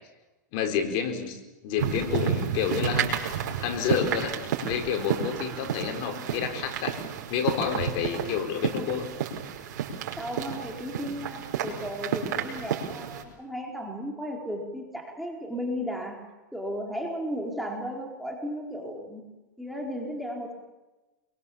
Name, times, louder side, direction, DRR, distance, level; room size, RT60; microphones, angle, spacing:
voice 1, 0.5-3.2 3.6-7.0 7.3-9.1, left 7 dB, 45° left, 6 dB, 4.8 m, -29 dB
sound 1, 1.8-13.2, right 8 dB, 70° right, 5.0 m, -31 dB
voice 2, 10.2-19.2 19.6-20.5, equal, ahead, 0 dB, 4.3 m, -35 dB
27.5 x 23.5 x 7.2 m, 1.1 s
supercardioid pair, 140°, 10 cm